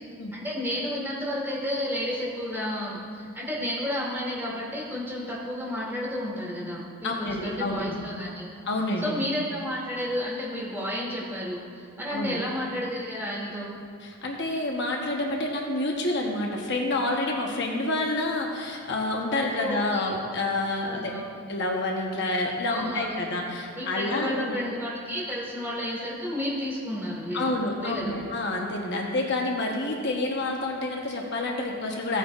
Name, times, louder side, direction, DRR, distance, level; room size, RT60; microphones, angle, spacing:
voice 1, 0.3-8.5 9.0-13.8 19.3-20.1 20.8-21.3 22.7-23.1 23.8-28.2, left 1 dB, 10° right, -6 dB, 2.5 m, -32 dB
voice 2, 7.0-8.1 8.7-9.2 12.1-12.4 14.0-21.1 21.5-24.6 27.3-32.2, left 2 dB, 50° left, 0 dB, 1.0 m, -28 dB
16.5 x 9.1 x 2.5 m, 2.3 s
head